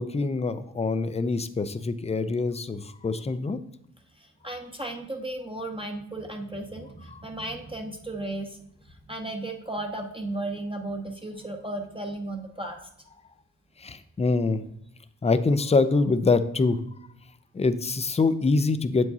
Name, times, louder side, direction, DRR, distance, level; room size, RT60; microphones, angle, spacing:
voice 1, 0.0-3.6 13.8-14.7 15.2-16.8 17.5-19.1, left 3 dB, 20° left, 12 dB, 0.4 m, -24 dB
voice 2, 4.2-8.6 8.8-12.8, right 2 dB, 15° right, 2 dB, 0.7 m, -35 dB
7.5 x 4.6 x 2.8 m, 0.75 s
supercardioid pair, 50°, 36 cm